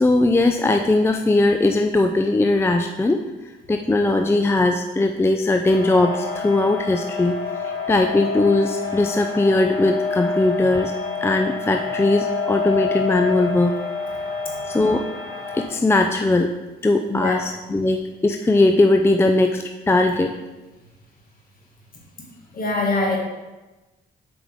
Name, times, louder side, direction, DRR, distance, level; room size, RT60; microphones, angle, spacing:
voice 1, 0.0-3.2 3.7-10.9 11.2-13.7 14.7-15.1 15.5-16.5 16.8-20.4, left 2 dB, 10° left, 4 dB, 0.4 m, -19 dB
sound 1, 5.7-15.6, left 4 dB, 80° left, 1.7 m, -28 dB
voice 2, 17.1-17.4 22.5-23.2, left 2 dB, 45° left, -2 dB, 2.0 m, -23 dB
7.3 x 5.1 x 3.5 m, 1.1 s
cardioid pair, 90°, 20 cm